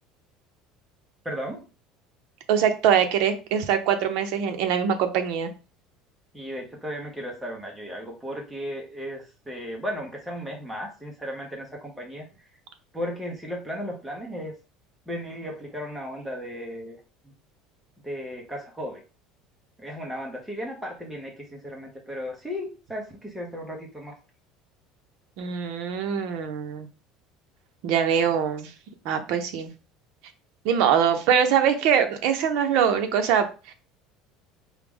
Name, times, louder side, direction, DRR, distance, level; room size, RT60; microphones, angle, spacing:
voice 1, 1.2-1.6 6.3-12.3 12.9-14.5 15.1-17.0 18.0-19.0 19.8-24.2, equal, ahead, -1 dB, 0.6 m, -35 dB
voice 2, 2.5-5.5 25.4-26.9 27.8-28.7 29.0-29.7 30.6-33.7, right 8 dB, 60° right, 7 dB, 0.6 m, -23 dB
4.6 x 2.1 x 3.4 m, 0.33 s
cardioid pair, 175°, 0 cm